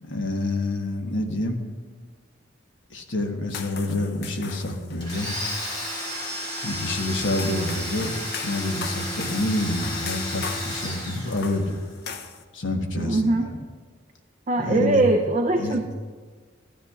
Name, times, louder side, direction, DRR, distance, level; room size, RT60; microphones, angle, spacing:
voice 1, 0.0-1.6 2.9-5.3 6.6-8.1 8.4-11.8 12.5-13.2 14.6-15.0 15.6-15.8, left 1 dB, 70° left, 2 dB, 1.2 m, -27 dB
sound 1, 3.5-12.4, left 6 dB, 55° left, 0.6 m, -40 dB
Domestic sounds home sounds, 5.0-11.8, left 1 dB, 25° left, 3.4 m, -32 dB
voice 2, 13.0-13.5 14.5-15.9, right 2 dB, 35° right, 4 dB, 0.5 m, -22 dB
14.0 x 12.5 x 2.4 m, 1.5 s
head